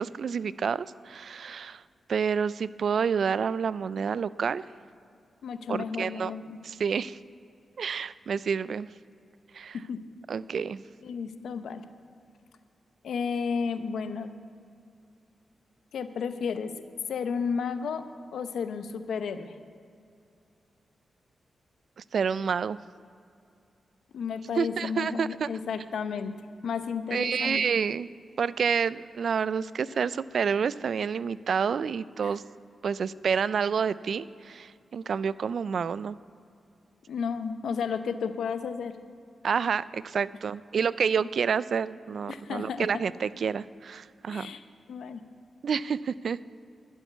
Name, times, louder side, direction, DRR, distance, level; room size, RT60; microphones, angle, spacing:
voice 1, 0.0-1.8 2.1-4.6 5.7-6.3 6.6-7.2 7.8-8.9 9.5-9.8 10.3-10.8 22.1-22.8 24.6-25.5 27.1-28.1 28.4-32.4 32.8-36.2 39.4-44.5 45.6-46.4, right 6 dB, 70° right, 18 dB, 0.3 m, -28 dB
voice 2, 5.4-6.6 9.9-10.0 11.0-11.8 13.0-14.3 15.9-16.7 17.1-18.0 18.3-19.5 24.1-26.3 26.6-27.6 32.2-32.3 37.1-38.9 42.3-42.9 44.3-44.6 44.9-45.2, left 6 dB, 80° left, 10 dB, 0.8 m, -32 dB
12.5 x 7.3 x 9.3 m, 2.5 s
supercardioid pair, 50°, 0 cm